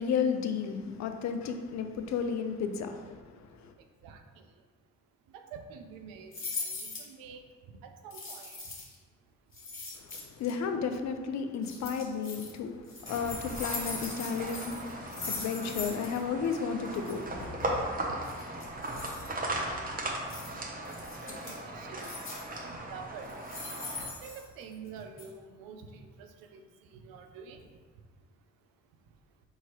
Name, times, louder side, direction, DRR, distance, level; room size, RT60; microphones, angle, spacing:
voice 1, 0.0-3.1 3.4-3.7 10.0-17.8, left 6 dB, 55° left, 7 dB, 0.5 m, -33 dB
voice 2, 4.0-4.4 5.3-8.6 18.1-18.2 21.2-22.1 22.6-23.3 24.0-27.7, right 6 dB, 75° right, 6 dB, 0.5 m, -48 dB
sound 1, 6.3-7.1 8.1-9.0 9.5-10.5 11.6-12.5 12.9-16.2 16.4-16.6 16.9-17.1 18.2-19.3 20.3-20.5 20.9-21.6 22.0-22.6 23.2-24.9 25.2-25.3, left 3 dB, 35° left, 1.2 m, -40 dB
sound 2, 13.0-24.1, right 1 dB, 25° right, 0.8 m, -37 dB
4.5 x 2.8 x 3.0 m, 1.5 s
hypercardioid pair, 50°, 35 cm